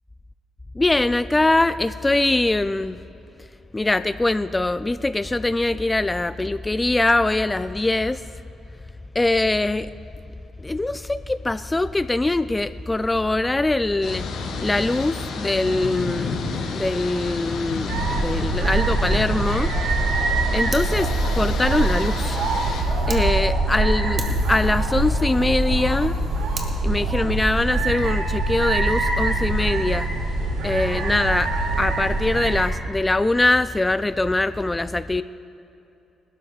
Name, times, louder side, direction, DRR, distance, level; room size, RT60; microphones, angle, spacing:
voice 1, 0.7-3.0 3.7-8.3 9.1-9.9 10.6-14.3 14.6-16.4 16.7-19.7 20.5-22.5 23.1-26.2 26.8-30.1 30.6-35.2, left 2 dB, 15° left, 13 dB, 0.3 m, -22 dB
sound 1, 14.0-22.8, left 4 dB, 80° left, 3.5 m, -31 dB
sound 2, 17.9-32.7, right 2 dB, 90° right, 2.4 m, -23 dB
Fire, 20.7-23.2 23.7-23.8 24.2-26.7, right 3 dB, 35° right, 1.9 m, -39 dB
29.5 x 13.0 x 2.4 m, 2.8 s
cardioid pair, 90°, 0 cm